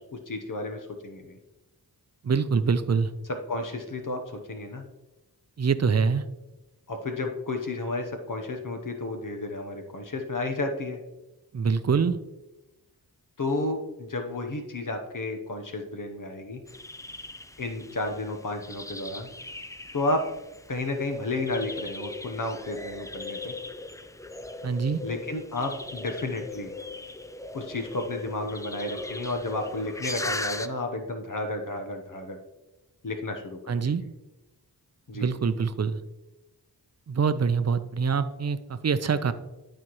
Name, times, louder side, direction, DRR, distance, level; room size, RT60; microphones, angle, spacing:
voice 1, 0.0-1.4 3.5-4.2 4.5-4.8 6.9-11.0 13.4-16.6 17.6-19.3 19.9-20.2 20.7-23.5 25.0-26.7 27.5-32.4 33.0-33.7 35.1-35.3, left 2 dB, 50° left, 4 dB, 1.1 m, -32 dB
voice 2, 2.2-3.1 5.6-6.2 11.5-12.2 24.6-25.0 33.7-34.0 35.1-36.0 37.1-39.3, right 5 dB, 40° right, 12 dB, 0.6 m, -25 dB
sound 1, 16.7-30.7, left 2 dB, 10° left, 0.4 m, -39 dB
12.0 x 4.3 x 3.1 m, 1.0 s
cardioid pair, 45°, 40 cm